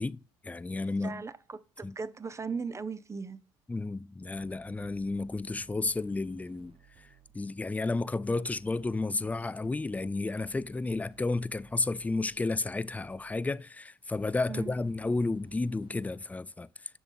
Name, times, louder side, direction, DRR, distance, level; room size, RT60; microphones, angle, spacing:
voice 1, 0.0-1.2 1.8-1.9 3.7-6.7 7.3-16.7, left 3 dB, 10° left, 0.4 m, -32 dB
voice 2, 1.0-3.4 14.5-14.8, right 5 dB, 25° right, 0.7 m, -38 dB
sound 1, 4.3-7.6 8.5-13.6 14.1-16.3, right 7 dB, 45° right, 0.9 m, -60 dB
7.1 x 6.0 x 5.3 m
hypercardioid pair, 70°, 12 cm